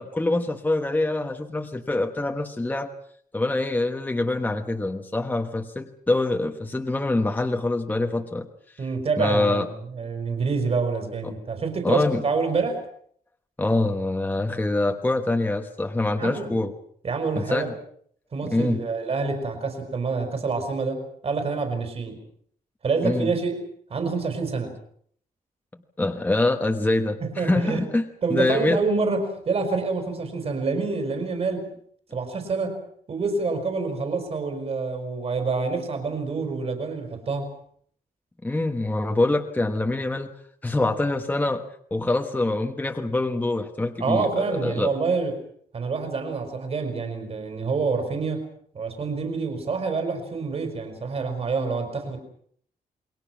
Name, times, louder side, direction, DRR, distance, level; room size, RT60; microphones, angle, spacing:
voice 1, 0.0-2.9 3.3-8.5 9.2-9.7 11.2-11.3 11.8-12.2 13.6-16.7 17.4-17.7 18.4-18.8 23.0-23.3 26.0-28.0 28.3-28.8 38.4-40.3 40.6-41.6 41.9-44.9, left 2 dB, 10° left, 4 dB, 1.2 m, -25 dB
voice 2, 8.8-12.8 16.1-16.6 17.0-17.7 18.3-22.2 22.8-23.5 23.9-24.7 27.2-27.9 28.2-31.7 32.1-32.8 33.1-37.5 44.0-45.3 45.7-48.4 48.7-52.2, right 4 dB, 45° right, 5 dB, 5.0 m, -27 dB
28.0 x 22.5 x 6.0 m, 0.62 s
wide cardioid pair, 175°, 15 cm